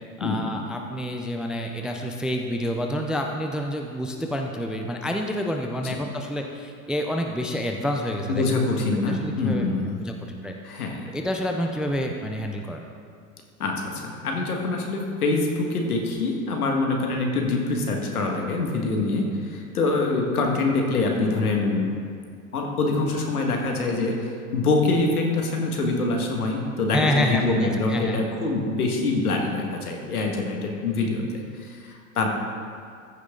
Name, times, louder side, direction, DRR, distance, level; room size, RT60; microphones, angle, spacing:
voice 1, 0.2-8.5 8.9-9.7 10.0-10.5 11.1-12.8 26.9-28.2, equal, ahead, 3 dB, 0.3 m, -28 dB
voice 2, 8.3-10.0 10.6-11.2 13.6-21.9 22.5-32.3, left 3 dB, 80° left, 1 dB, 1.7 m, -25 dB
14.5 x 6.4 x 3.7 m, 2.2 s
hypercardioid pair, 95°, 43 cm